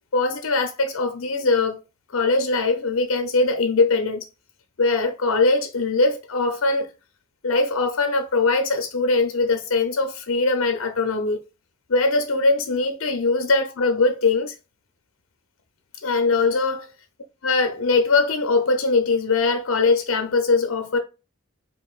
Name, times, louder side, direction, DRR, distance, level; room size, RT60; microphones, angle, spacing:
voice 1, 0.1-1.8 2.1-4.3 4.8-6.9 7.4-11.4 11.9-14.5 16.0-16.9 17.4-21.0, left 3 dB, 90° left, 0.6 m, -21 dB
4.5 x 2.9 x 2.4 m
head